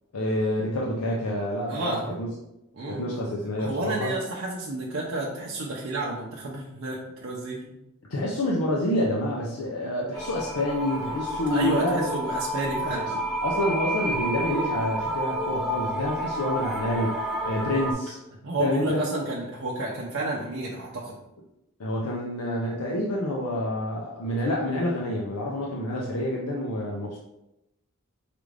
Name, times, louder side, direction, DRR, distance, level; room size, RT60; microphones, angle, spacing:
voice 1, 0.1-2.3 2.9-4.1 8.1-12.1 12.9-13.0 13.4-17.2 17.4-18.2 18.6-19.0 21.8-27.2, left 1 dB, 80° left, -2 dB, 0.6 m, -28 dB
voice 2, 1.7-2.2 2.7-3.1 3.6-7.7 11.5-13.2 18.4-21.2, right 2 dB, 60° right, -4 dB, 0.6 m, -31 dB
sound 1, 10.1-17.9, right 1 dB, ahead, 0.6 m, -30 dB
4.9 x 2.5 x 3.2 m, 0.89 s
head